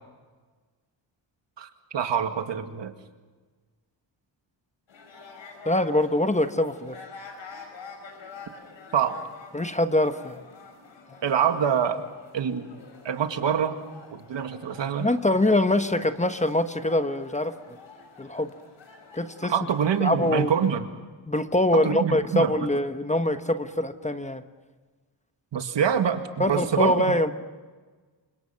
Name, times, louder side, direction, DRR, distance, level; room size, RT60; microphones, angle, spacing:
voice 1, 1.6-2.9 8.9-9.2 11.2-12.0 12.3-12.7 13.0-13.8 14.1-15.1 19.5-20.9 21.7-22.5 25.5-27.0, right 8 dB, 65° right, 7 dB, 2.2 m, -25 dB
sound 1, 4.9-20.7, left 4 dB, 75° left, 6.1 m, -47 dB
voice 2, 5.6-7.0 9.5-10.4 11.1-11.2 15.0-17.5 18.2-18.5 19.1-19.5 20.0-20.5 21.3-24.4 26.4-27.3, left 1 dB, 15° left, 9 dB, 1.2 m, -24 dB
29.0 x 25.5 x 5.9 m, 1.4 s
cardioid pair, 95°, 46 cm